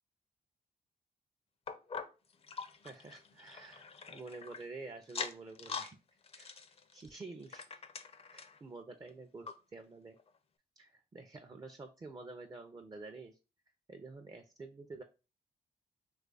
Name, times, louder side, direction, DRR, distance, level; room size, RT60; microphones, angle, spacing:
sound 1, 1.7-4.6 5.0-5.9 6.2-8.6 9.1-9.2 9.5-9.6 10.2-10.3, left 5 dB, 35° left, 0.4 m, -44 dB
voice 1, 2.8-6.0 6.3-6.5 6.9-7.8 8.3-10.2 10.8-13.4 13.9-15.0, right 3 dB, 25° right, 6 dB, 0.4 m, -49 dB
2.9 x 2.3 x 3.9 m, 0.32 s
cardioid pair, 70°, 17 cm